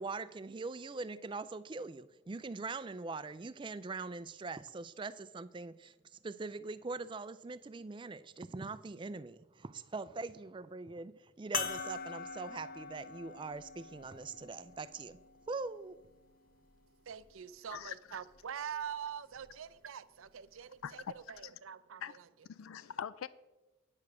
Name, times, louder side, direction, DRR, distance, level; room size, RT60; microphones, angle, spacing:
voice 1, 0.0-15.2 15.5-16.0, right 3 dB, 25° right, 15 dB, 0.3 m, -42 dB
sound 1, 11.5-16.3 17.1-17.2 19.4-19.5, left 5 dB, 45° left, 0.8 m, -43 dB
voice 2, 17.1-22.2, right 8 dB, 80° right, 15 dB, 0.5 m, -44 dB
voice 3, 20.8-21.2 21.4-21.5 22.0-22.2 22.5-23.3, left 8 dB, 80° left, 16 dB, 0.4 m, -42 dB
9.6 x 6.7 x 6.0 m, 1.1 s
head